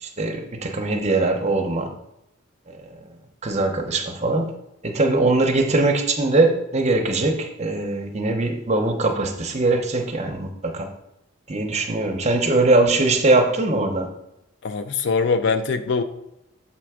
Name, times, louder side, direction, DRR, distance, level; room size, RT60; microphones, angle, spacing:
voice 1, 0.0-1.9 3.4-4.5 4.8-10.9 11.5-14.1, right 2 dB, 35° right, 3 dB, 0.8 m, -21 dB
voice 2, 14.6-16.0, left 4 dB, 60° left, 10 dB, 0.5 m, -22 dB
7.2 x 3.4 x 4.9 m, 0.83 s
head